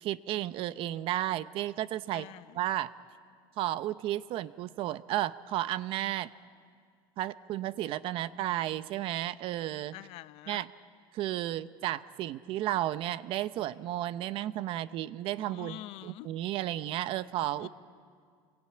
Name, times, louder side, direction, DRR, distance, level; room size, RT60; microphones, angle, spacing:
voice 1, 0.0-2.3 2.6-2.9 3.6-6.3 7.2-9.9 10.5-10.7 11.1-17.7, right 13 dB, 50° right, 15 dB, 0.8 m, -33 dB
voice 2, 2.1-2.6 9.9-10.7 15.4-16.3 17.6-17.7, left 15 dB, 55° left, 16 dB, 0.6 m, -46 dB
28.0 x 21.5 x 8.8 m, 2.1 s
cardioid pair, 145°, 12 cm